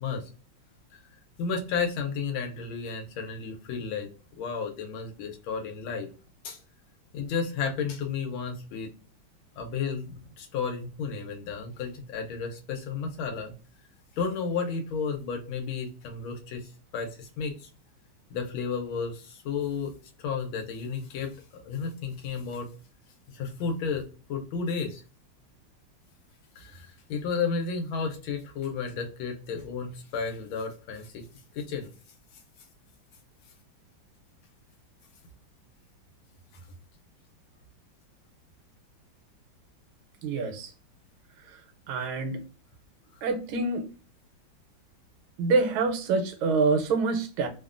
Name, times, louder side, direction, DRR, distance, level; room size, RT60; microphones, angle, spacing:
voice 1, 1.4-4.1 4.4-6.1 6.4-6.6 7.1-8.9 9.6-13.5 14.2-17.7 18.3-22.7 23.3-25.0 26.6-31.2 31.5-31.9, left 5 dB, 90° left, 4 dB, 1.5 m, -32 dB
voice 2, 40.2-40.7 41.5-41.6 41.9-42.4 43.2-43.9 45.4-47.5, right 4 dB, 85° right, 7 dB, 1.4 m, -26 dB
3.5 x 2.1 x 2.4 m, 0.36 s
omnidirectional pair, 2.2 m